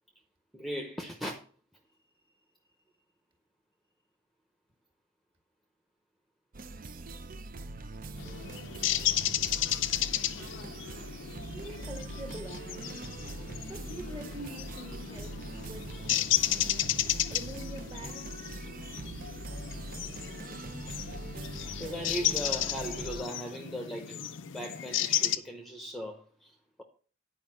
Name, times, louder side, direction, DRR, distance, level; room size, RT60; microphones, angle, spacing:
voice 1, 0.5-1.4 18.0-18.5 21.8-26.8, equal, ahead, 0.9 m, -39 dB
sound 1, 6.5-23.2, right 2 dB, 45° right, 0.6 m, -42 dB
sound 2, 8.2-25.4, left 12 dB, 70° left, 0.5 m, -33 dB
voice 2, 11.5-13.0 13.7-16.0 17.3-18.2, right 1 dB, 25° right, 1.6 m, -44 dB
9.8 x 5.0 x 6.0 m
head